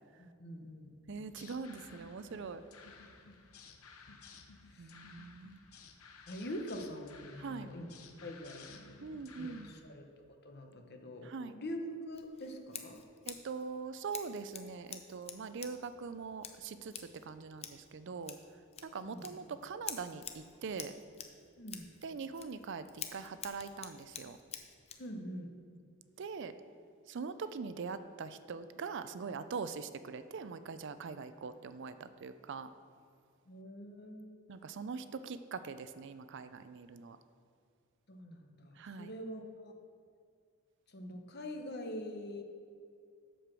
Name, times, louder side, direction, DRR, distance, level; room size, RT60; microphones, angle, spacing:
voice 1, 0.2-1.0 4.7-4.9 6.3-7.9 8.2-9.0 9.4-10.1 10.4-13.0 19.0-19.3 21.6-21.9 25.0-25.5 33.5-34.4 38.1-39.7 40.9-42.4, equal, 50° left, 4 dB, 1.0 m, -44 dB
sound 1, 1.1-9.8, left 5 dB, 80° left, 0.9 m, -55 dB
voice 2, 1.1-2.6 4.8-5.6 7.4-7.7 9.0-9.7 11.2-11.5 13.3-18.4 18.8-20.9 22.0-24.4 26.2-26.5 27.1-32.7 34.5-37.2 38.8-39.1, right 5 dB, 55° right, 12 dB, 0.4 m, -42 dB
Scissors, 12.1-25.1, left 8 dB, 30° left, 0.6 m, -49 dB
7.8 x 6.7 x 6.1 m, 2.3 s
head